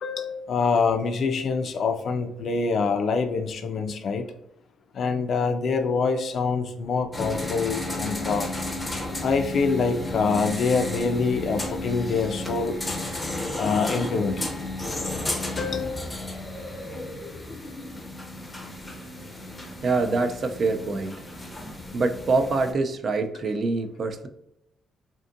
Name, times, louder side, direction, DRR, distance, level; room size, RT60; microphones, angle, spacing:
voice 1, 0.0-4.3 4.9-8.5 9.2-12.8 13.5-14.3 15.3-16.0, left 4 dB, 60° left, 7 dB, 0.3 m, -25 dB
sound 1, 7.1-22.7, left 2 dB, 15° left, 0.6 m, -33 dB
voice 2, 19.8-21.2 21.9-24.3, right 3 dB, 50° right, 7 dB, 0.3 m, -25 dB
2.5 x 2.5 x 2.5 m, 0.82 s
cardioid pair, 90°, 0 cm